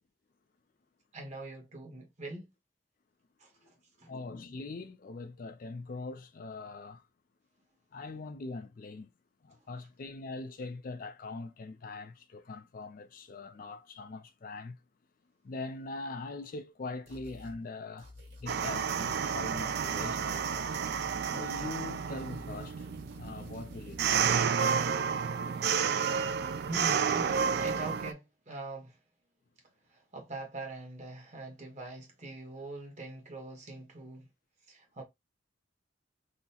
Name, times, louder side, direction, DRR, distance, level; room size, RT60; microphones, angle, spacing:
voice 1, 1.1-2.5 3.4-4.1 26.7-28.9 29.9-34.3 34.7-35.0, right 2 dB, 40° right, 1.0 m, -43 dB
voice 2, 4.1-7.0 7.9-9.1 9.4-14.8 15.4-18.1 18.4-20.5 21.3-22.9 23.2-24.2, left 3 dB, 45° left, 0.4 m, -42 dB
sound 1, 17.1-17.6 18.0-21.3 21.5-24.4, left 2 dB, 85° right, 1.6 m, -50 dB
sound 2, 18.5-28.1, right 6 dB, 55° right, 0.3 m, -31 dB
3.7 x 2.1 x 2.7 m
head